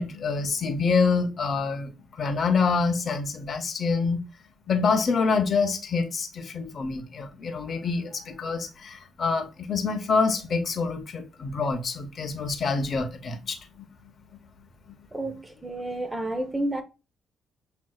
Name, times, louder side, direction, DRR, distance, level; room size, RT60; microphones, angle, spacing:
voice 1, 0.0-4.2 4.7-13.9, left 4 dB, 50° left, 0.9 m, -26 dB
voice 2, 15.1-16.8, right 1 dB, 15° right, 0.7 m, -30 dB
7.5 x 2.7 x 2.3 m
cardioid pair, 90°, 0 cm